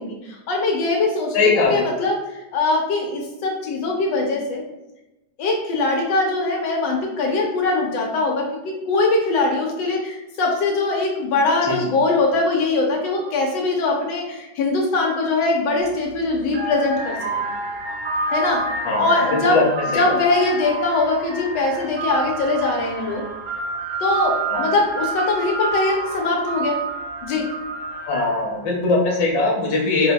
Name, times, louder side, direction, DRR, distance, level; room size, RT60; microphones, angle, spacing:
voice 1, 0.0-4.6 5.4-17.4 18.3-18.6 19.0-19.6 19.9-23.2 24.0-26.8 27.2-27.5, left 3 dB, 80° left, 0 dB, 1.3 m, -22 dB
voice 2, 1.3-1.8 11.6-11.8 18.8-19.6 19.9-20.2 24.5-24.7 28.1-30.1, left 3 dB, 55° left, -3 dB, 0.9 m, -20 dB
sound 1, 15.8-16.0 16.5-28.6, right 2 dB, 75° right, 1.3 m, -28 dB
4.5 x 2.0 x 2.2 m, 0.95 s
omnidirectional pair, 2.0 m